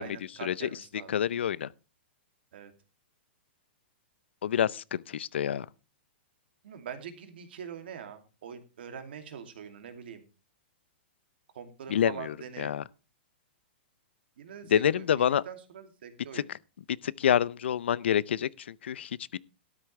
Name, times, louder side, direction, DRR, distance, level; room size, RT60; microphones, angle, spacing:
voice 1, 0.0-1.1 2.5-2.7 6.6-10.3 11.5-12.8 14.4-16.5, right 8 dB, 65° right, 2.6 m, -44 dB
voice 2, 1.1-1.7 4.4-5.7 11.9-12.8 14.7-15.4 16.3-16.4 16.9-19.4, left 9 dB, 90° left, 0.6 m, -27 dB
13.0 x 12.5 x 3.3 m
hypercardioid pair, 165°, 6 cm